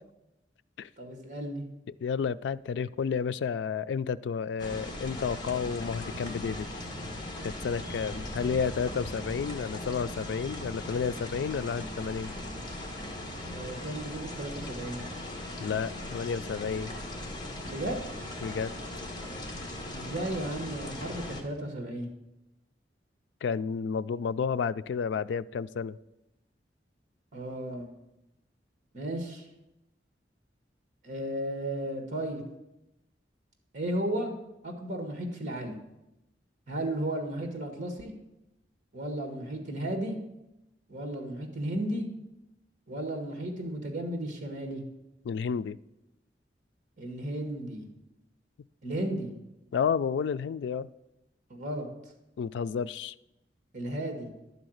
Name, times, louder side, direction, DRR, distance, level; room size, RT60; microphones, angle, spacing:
voice 1, 1.0-1.6 13.5-15.0 17.7-18.0 19.9-22.1 27.3-27.9 28.9-29.5 31.0-32.4 33.7-34.3 34.6-35.8 36.7-38.1 38.9-40.2 40.9-42.0 42.9-44.8 47.0-47.9 48.8-49.3 51.5-51.9 53.7-54.3, right 1 dB, 45° right, 4 dB, 1.6 m, -34 dB
voice 2, 2.0-6.7 7.4-12.3 15.6-16.9 18.4-18.7 23.4-26.0 45.3-45.8 49.7-50.9 52.4-53.1, left 6 dB, 80° left, 15 dB, 0.3 m, -31 dB
sound 1, 4.6-21.4, left 1 dB, 25° left, 1.3 m, -39 dB
11.5 x 4.0 x 7.8 m, 0.92 s
head